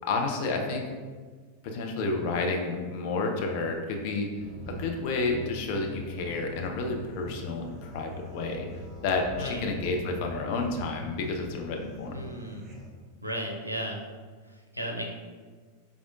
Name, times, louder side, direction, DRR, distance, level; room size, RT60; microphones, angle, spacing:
voice 1, 0.1-0.9 1.6-4.3 4.7-8.7 9.0-12.2, left 3 dB, 45° left, 2 dB, 0.6 m, -30 dB
sound 1, 4.4-12.9, equal, 20° right, 0.8 m, -43 dB
voice 2, 12.1-12.6 13.2-14.0 14.5-15.0, equal, 85° right, 2 dB, 0.5 m, -35 dB
4.8 x 3.5 x 2.6 m, 1.5 s
figure-of-eight pair, 90°, 0 cm